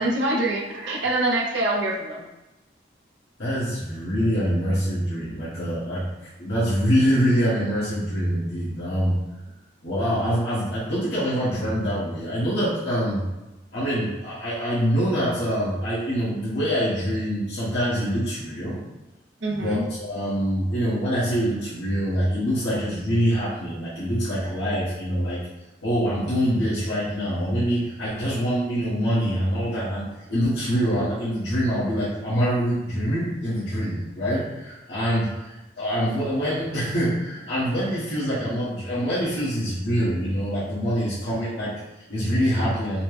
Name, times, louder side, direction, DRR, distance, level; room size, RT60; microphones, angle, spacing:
voice 1, 0.0-2.3 19.4-19.8, right 2 dB, 85° right, -2 dB, 0.6 m, -25 dB
voice 2, 3.4-6.0 6.4-9.2 9.8-13.2 13.7-18.8 19.5-25.4 25.8-43.0, equal, 75° left, -10 dB, 1.3 m, -25 dB
4.2 x 2.0 x 3.2 m, 1.0 s
head